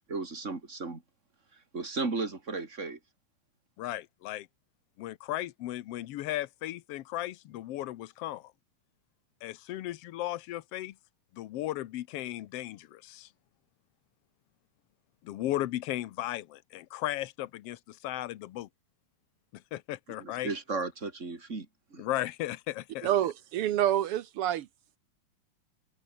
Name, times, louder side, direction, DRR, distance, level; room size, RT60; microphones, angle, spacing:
voice 1, 0.1-1.0 1.5-3.0 20.2-22.1, right 3 dB, 20° right, 3.4 m, -35 dB
voice 2, 3.8-4.5 5.0-8.5 9.4-10.9 11.3-13.3 15.2-18.7 19.5-20.5 22.0-23.1, left 15 dB, 75° left, 1.4 m, -36 dB
voice 3, 23.0-24.7, right 12 dB, 75° right, 1.3 m, -27 dB
omnidirectional pair, 3.8 m